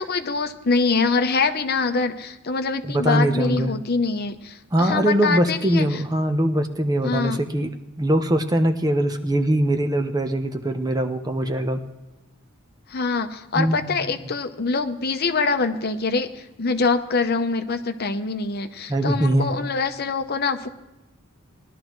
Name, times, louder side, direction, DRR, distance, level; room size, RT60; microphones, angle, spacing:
voice 1, 0.0-6.0 7.0-7.4 12.9-20.7, left 4 dB, 45° left, 8 dB, 0.8 m, -24 dB
voice 2, 2.9-3.7 4.7-7.7 8.0-11.8 13.5-13.8 18.9-19.5, right 1 dB, 20° right, 7 dB, 0.7 m, -22 dB
20.0 x 12.0 x 3.1 m, 1.0 s
head